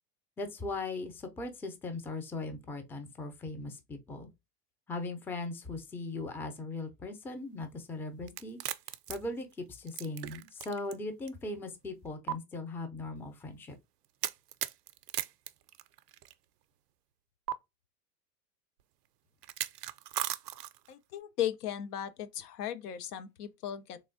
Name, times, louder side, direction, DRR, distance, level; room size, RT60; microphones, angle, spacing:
voice 1, 0.4-4.3 4.9-8.6 9.1-13.7, left 2 dB, 5° left, 0.4 m, -39 dB
sound 1, 8.3-11.0 11.3-11.4 12.3-12.4 14.2-16.3 17.5-17.6 19.4-20.9, right 13 dB, 75° right, 0.5 m, -37 dB
voice 2, 20.9-24.0, left 10 dB, 70° left, 0.6 m, -36 dB
3.6 x 3.0 x 2.6 m
figure-of-eight pair, 80°, 48 cm